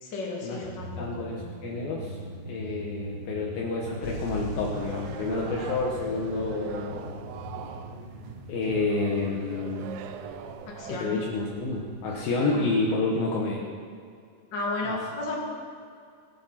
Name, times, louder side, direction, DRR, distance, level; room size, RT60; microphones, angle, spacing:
voice 1, 0.0-1.3 10.8-11.2 12.5-12.6 14.5-15.3, left 2 dB, 30° left, -3 dB, 2.3 m, -33 dB
sound 1, 0.6-12.1, equal, 55° right, 6.1 m, -43 dB
voice 2, 1.0-2.2 2.5-7.1 8.5-9.8 10.9-13.6 14.8-15.0, left 3 dB, 65° left, -2 dB, 2.7 m, -29 dB
sound 2, 4.0-11.5 12.2-12.3, left 3 dB, 85° left, 4.1 m, -43 dB
sound 3, 4.7-11.0, right 8 dB, 85° right, 3.0 m, -41 dB
18.5 x 10.0 x 5.9 m, 2.2 s
omnidirectional pair, 5.2 m